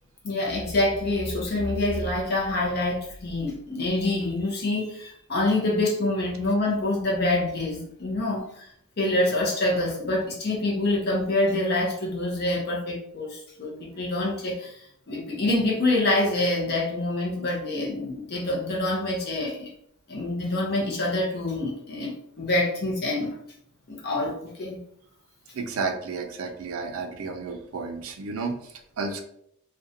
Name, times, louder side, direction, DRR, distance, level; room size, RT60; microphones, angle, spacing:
voice 1, 0.2-8.7 9.0-19.7 20.1-23.3 23.9-24.8, left 2 dB, 50° left, -3 dB, 0.5 m, -26 dB
voice 2, 25.5-29.2, right 4 dB, 85° right, 5 dB, 0.4 m, -32 dB
2.5 x 2.1 x 2.6 m, 0.70 s
head